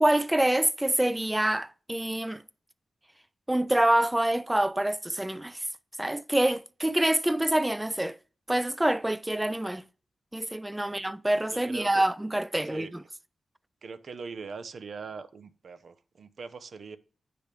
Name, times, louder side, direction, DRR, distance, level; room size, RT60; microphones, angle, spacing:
voice 1, 0.0-2.4 3.5-5.6 6.0-8.2 8.5-9.8 10.3-13.0, right 1 dB, 10° right, 0.4 m, -26 dB
voice 2, 11.5-12.0 12.6-12.9 13.8-17.0, right 5 dB, 70° right, 0.7 m, -42 dB
8.7 x 3.4 x 5.8 m
cardioid pair, 85°, 0 cm